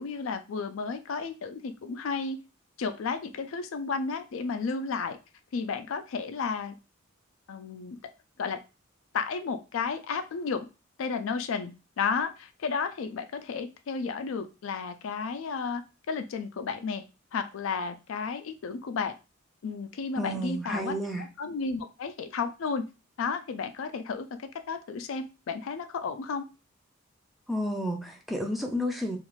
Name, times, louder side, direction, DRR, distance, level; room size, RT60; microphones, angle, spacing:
voice 1, 0.0-2.4 2.8-5.2 5.5-6.7 7.5-8.0 8.4-8.6 9.1-10.7 11.0-17.0 17.3-19.1 19.6-21.0 21.4-22.9 23.2-24.3 24.7-26.5, left 5 dB, 70° left, 8 dB, 0.4 m, -32 dB
voice 2, 20.1-21.3 27.5-29.2, equal, ahead, 2 dB, 0.4 m, -31 dB
2.4 x 2.4 x 3.0 m, 0.29 s
head